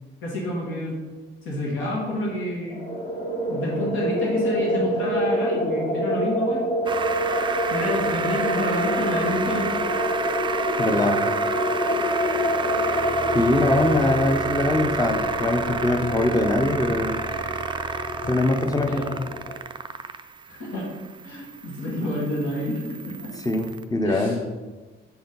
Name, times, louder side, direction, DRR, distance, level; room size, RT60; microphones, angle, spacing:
voice 1, 0.2-0.9 1.4-2.8 3.5-6.6 7.7-9.7 18.9-19.1 20.5-20.9 21.2-23.3 24.0-24.4, left 1 dB, 80° left, -3 dB, 2.0 m, -28 dB
sound 1, 2.7-19.6, equal, 35° left, 1.3 m, -27 dB
sound 2, 6.8-23.8, right 5 dB, 25° right, 0.4 m, -31 dB
voice 2, 10.8-11.3 13.3-17.2 18.2-19.1 23.4-24.4, left 2 dB, 20° left, 5 dB, 0.7 m, -22 dB
6.8 x 4.2 x 3.9 m, 1.3 s
cardioid pair, 90°, 20 cm